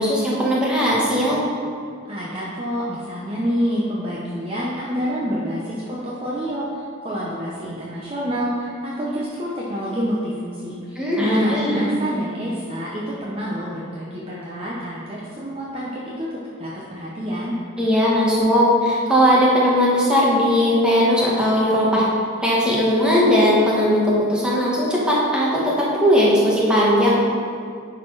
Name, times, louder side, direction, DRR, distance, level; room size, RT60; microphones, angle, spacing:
voice 1, 0.0-1.4 11.0-11.9 17.8-22.0 22.4-27.2, equal, 5° right, -6 dB, 1.4 m, -18 dB
voice 2, 2.1-16.3 16.6-17.5, equal, 25° right, -6 dB, 0.8 m, -27 dB
10.5 x 4.1 x 4.8 m, 2.3 s
head